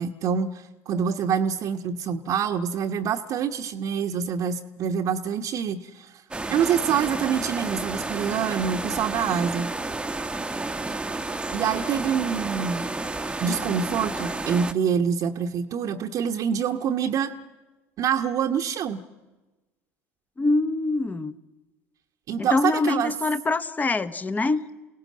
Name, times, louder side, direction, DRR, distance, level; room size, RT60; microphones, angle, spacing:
voice 1, 0.0-6.1 6.5-9.7 11.5-12.9 13.4-17.3 18.0-19.0 22.3-23.1, right 7 dB, 50° right, 1.1 m, -26 dB
sound 1, 6.3-14.7, right 2 dB, 10° right, 1.1 m, -31 dB
voice 2, 20.4-21.3 22.4-24.6, left 3 dB, 20° left, 1.2 m, -24 dB
29.5 x 18.0 x 7.5 m
hypercardioid pair, 70°, 8 cm